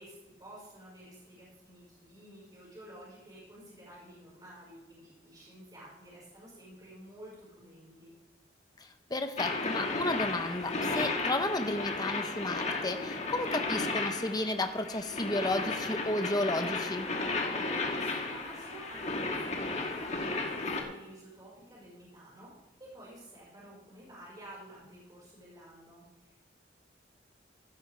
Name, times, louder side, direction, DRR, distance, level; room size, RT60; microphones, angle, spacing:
voice 1, 0.0-8.1 17.3-26.4, right 1 dB, 20° right, -6 dB, 5.3 m, -51 dB
voice 2, 8.8-17.1, left 2 dB, 20° left, 7 dB, 1.0 m, -33 dB
sound 1, 9.4-20.8, left 3 dB, 40° left, 1.6 m, -34 dB
15.5 x 11.5 x 3.5 m, 1.1 s
head